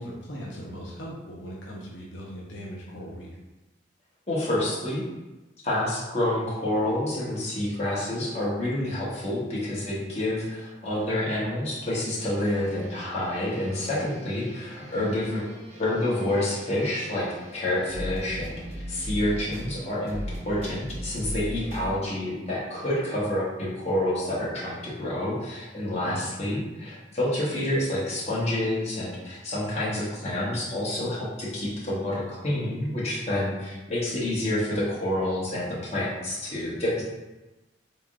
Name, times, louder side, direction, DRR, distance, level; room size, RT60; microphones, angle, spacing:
voice 1, 0.0-3.3 14.9-15.1 25.9-26.2, equal, 80° left, -4 dB, 0.7 m, -39 dB
voice 2, 4.3-5.0 5.6-15.4 15.8-17.3 17.5-20.2 20.4-37.0, left 1 dB, 35° left, -7 dB, 1.1 m, -28 dB
sound 1, 12.2-21.9, equal, 35° right, 0.7 m, -39 dB
3.5 x 3.5 x 2.5 m, 1.1 s
head